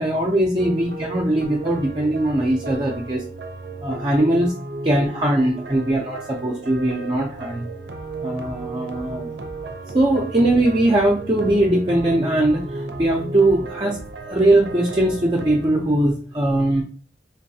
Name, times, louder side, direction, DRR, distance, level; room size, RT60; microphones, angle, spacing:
voice 1, 0.0-3.2 3.8-4.5 4.8-7.6 8.2-9.3 9.9-14.0 14.2-16.8, right 1 dB, 25° right, -3 dB, 0.5 m, -20 dB
sound 1, 0.6-15.7, right 3 dB, 75° right, 0.5 m, -34 dB
3.9 x 2.7 x 2.7 m, 0.37 s
head